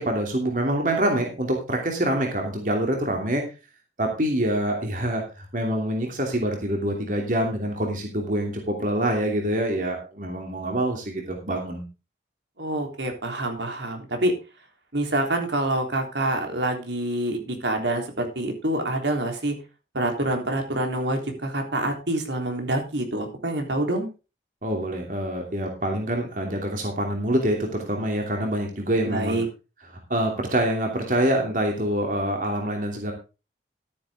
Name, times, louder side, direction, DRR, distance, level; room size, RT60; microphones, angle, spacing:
voice 1, 0.0-3.5 4.0-11.8 24.6-29.4 30.1-33.1, right 1 dB, 45° right, 2 dB, 2.9 m, -25 dB
voice 2, 12.6-14.3 14.9-19.6 19.9-24.1 29.1-29.5, right 1 dB, 75° right, 3 dB, 3.5 m, -26 dB
13.0 x 10.0 x 3.6 m, 0.30 s
head